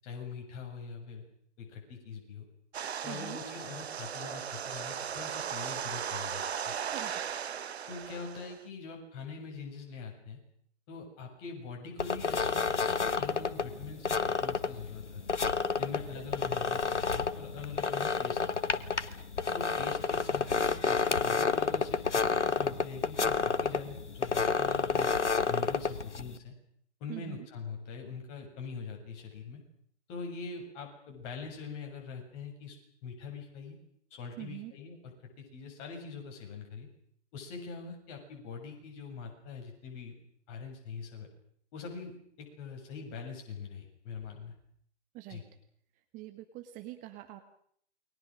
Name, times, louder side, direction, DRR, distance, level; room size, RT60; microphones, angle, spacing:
voice 1, 0.0-1.2 1.6-2.4 3.0-6.7 7.9-10.4 10.9-15.4 15.8-18.4 19.5-25.1 25.5-26.5 27.0-29.6 30.1-33.8 34.1-36.9 37.3-40.2 40.5-41.3 41.7-44.5 45.3-45.4, left 5 dB, 30° left, 2 dB, 7.5 m, -43 dB
sound 1, 2.7-8.6, right 8 dB, 65° right, 1.0 m, -37 dB
voice 2, 3.1-3.4 6.9-7.4 16.1-16.2 27.1-27.5 34.4-34.7 45.1-45.4 46.1-47.4, right 16 dB, 20° right, 8 dB, 1.7 m, -44 dB
sound 2, 12.0-26.4, left 5 dB, 80° left, 1.6 m, -30 dB
29.5 x 23.5 x 6.5 m, 0.65 s
figure-of-eight pair, 125°, 35 cm